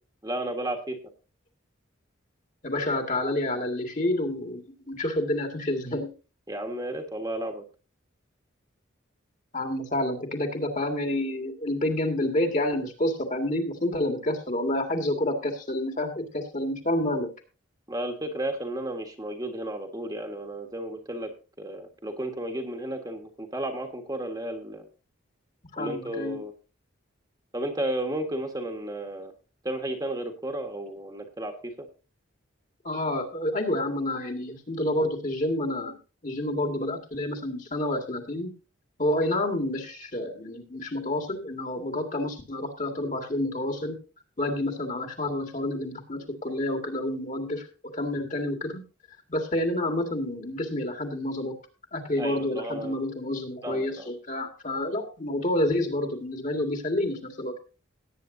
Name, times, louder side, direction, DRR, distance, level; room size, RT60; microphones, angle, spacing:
voice 1, 0.2-1.0 6.5-7.6 17.9-21.3 21.6-24.8 25.8-26.5 27.5-29.3 29.6-31.9 52.2-53.0 53.6-54.1, right 1 dB, 20° right, 3 dB, 1.5 m, -33 dB
voice 2, 2.6-6.1 9.5-17.3 25.7-26.4 32.8-36.0 36.2-38.5 39.0-44.0 44.4-47.7 47.9-48.8 49.3-51.5 51.9-57.5, left 1 dB, 35° left, 4 dB, 1.9 m, -29 dB
17.5 x 9.1 x 2.7 m, 0.32 s
head